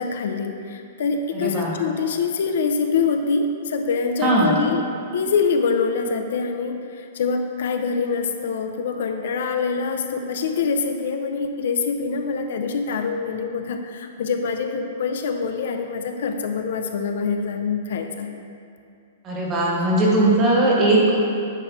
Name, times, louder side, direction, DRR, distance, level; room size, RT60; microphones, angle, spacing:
voice 1, 0.0-4.9 5.1-18.3, left 5 dB, 65° left, 5 dB, 0.6 m, -25 dB
voice 2, 1.4-1.7 4.2-4.5 19.2-21.2, right 2 dB, 20° right, -4 dB, 1.4 m, -19 dB
9.7 x 3.2 x 6.2 m, 2.5 s
hypercardioid pair, 170°, 0 cm